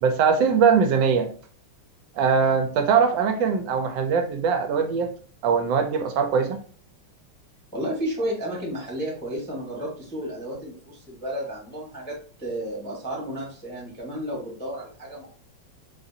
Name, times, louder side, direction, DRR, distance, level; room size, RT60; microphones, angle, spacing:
voice 1, 0.0-1.3 2.2-5.1 5.4-6.6, right 6 dB, 80° right, 6 dB, 1.3 m, -21 dB
voice 2, 7.7-15.3, equal, 10° left, -4 dB, 0.8 m, -32 dB
4.4 x 2.5 x 2.7 m, 0.43 s
omnidirectional pair, 2.0 m